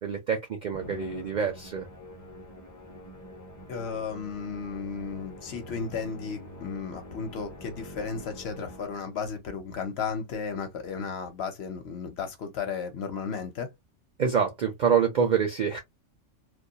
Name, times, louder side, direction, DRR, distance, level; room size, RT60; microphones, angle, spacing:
voice 1, 0.0-1.9 14.2-15.8, right 6 dB, 65° right, 0.4 m, -26 dB
Musical instrument, 0.7-9.3, equal, 25° left, 0.4 m, -45 dB
voice 2, 3.7-13.7, left 6 dB, 60° left, 0.8 m, -34 dB
2.4 x 2.2 x 2.7 m
omnidirectional pair, 1.3 m